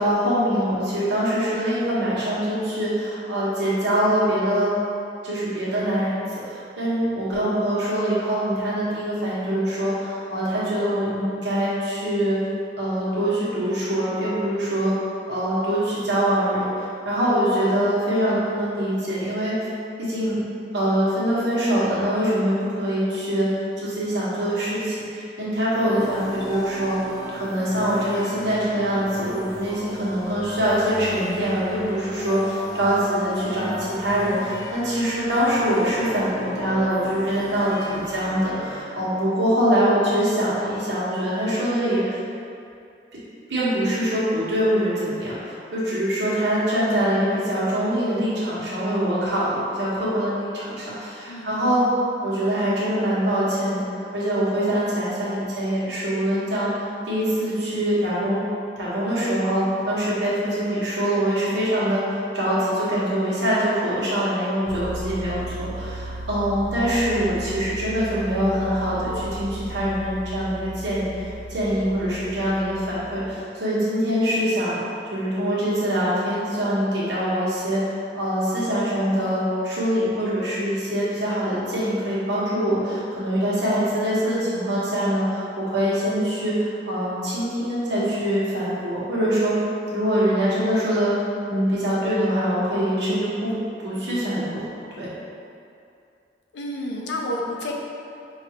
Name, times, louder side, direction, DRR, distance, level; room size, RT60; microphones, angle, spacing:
voice 1, 0.0-4.7 5.2-6.2 6.5-12.4 12.8-14.9 15.3-19.6 20.0-20.4 20.7-23.5 23.8-27.0 27.3-42.2 43.5-51.8 52.2-53.8 54.1-58.4 58.8-62.0 62.3-74.8 75.1-77.8 78.1-89.6 89.9-91.1 91.5-93.5 93.8-94.7 94.9-95.1, equal, 75° right, -9 dB, 1.2 m, -24 dB
sound 1, 25.7-39.2, equal, 20° left, 0.5 m, -36 dB
voice 2, 51.3-52.0 96.5-97.7, left 1 dB, 75° left, -1 dB, 0.5 m, -30 dB
sound 2, 64.7-73.3, right 1 dB, 5° right, 0.8 m, -36 dB
5.1 x 2.4 x 2.9 m, 2.5 s
head